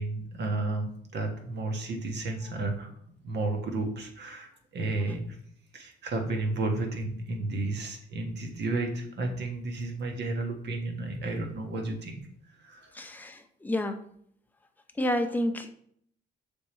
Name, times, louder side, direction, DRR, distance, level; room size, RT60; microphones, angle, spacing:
voice 1, 0.0-2.9 3.2-5.4 5.7-12.2 12.6-13.0, right 2 dB, 60° right, 4 dB, 1.4 m, -32 dB
voice 2, 12.9-14.1 15.0-15.7, left 1 dB, 10° left, 5 dB, 0.7 m, -30 dB
6.8 x 3.6 x 4.3 m, 0.66 s
cardioid pair, 90°, 20 cm